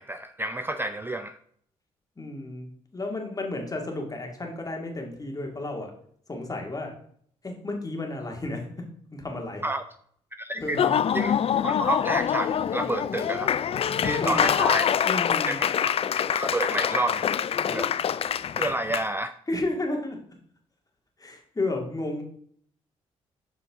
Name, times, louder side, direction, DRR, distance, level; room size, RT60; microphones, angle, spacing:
voice 1, 0.0-1.4 9.6-9.8 10.4-10.8 11.1-11.3 11.6-13.5 14.0-14.9 15.5-17.3 17.7-17.9 18.6-19.3, right 2 dB, 15° right, 10 dB, 0.4 m, -30 dB
voice 2, 2.2-5.9 6.3-6.9 7.4-8.9 9.1-9.6 10.6-10.9 14.2-14.5 15.1-15.6 19.5-20.2 21.2-22.2, left 2 dB, 25° left, 2 dB, 2.1 m, -32 dB
Laughter / Applause, 10.6-19.1, left 8 dB, 45° left, 0.4 m, -25 dB
7.3 x 5.3 x 3.6 m, 0.63 s
supercardioid pair, 55°, 13 cm